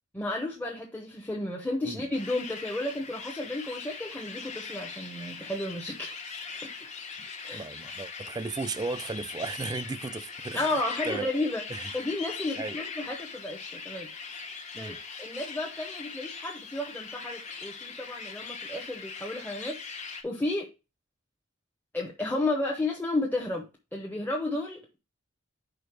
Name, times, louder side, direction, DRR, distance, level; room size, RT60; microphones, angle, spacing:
voice 1, 0.1-6.2 6.6-6.7 7.4-7.7 10.5-11.6 11.9-14.1 14.8-20.7 21.9-25.0, left 2 dB, 10° left, 0.9 m, -33 dB
sound 1, 2.1-20.2, left 5 dB, 35° left, 1.0 m, -41 dB
voice 2, 7.5-10.7 11.1-11.3 11.7-11.9 12.6-12.8 14.7-15.0, right 3 dB, 20° right, 0.3 m, -35 dB
5.1 x 4.2 x 5.9 m
head